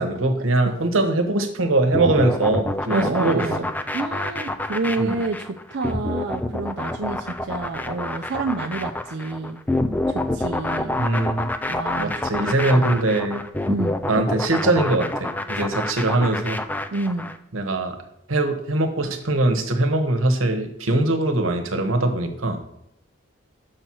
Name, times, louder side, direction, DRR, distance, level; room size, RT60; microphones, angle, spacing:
voice 1, 0.0-3.5 5.0-5.2 11.0-11.5 12.0-13.5 14.1-16.6 17.5-18.0 18.3-22.6, right 2 dB, 80° right, 6 dB, 1.1 m, -22 dB
sound 1, 1.9-17.4, left 1 dB, 10° left, 0.3 m, -27 dB
voice 2, 2.9-3.6 3.9-9.6 10.1-11.0 11.7-12.3 12.7-12.9 13.7-14.0 16.9-17.3, right 3 dB, 55° right, 2 dB, 0.5 m, -28 dB
6.5 x 4.4 x 6.1 m, 0.76 s
head